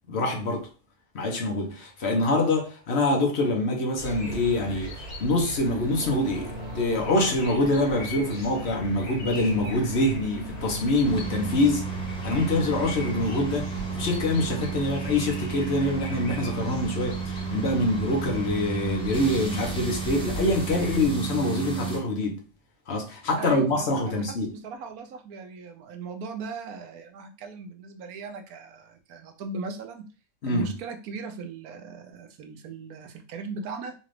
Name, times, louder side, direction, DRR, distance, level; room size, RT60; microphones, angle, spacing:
voice 1, 0.1-0.7 1.1-11.9 12.2-22.4 22.9-24.5 30.4-30.7, left 2 dB, 50° left, 1.1 m, -25 dB
sound 1, 4.0-21.1, equal, 80° left, 1.9 m, -40 dB
sound 2, 5.9-11.6, equal, 55° right, 1.3 m, -39 dB
sound 3, 11.0-22.0, right 5 dB, 5° left, 0.4 m, -32 dB
voice 2, 23.4-30.0 30.5-33.9, right 4 dB, 80° right, 1.2 m, -38 dB
4.2 x 2.5 x 3.2 m
omnidirectional pair, 1.6 m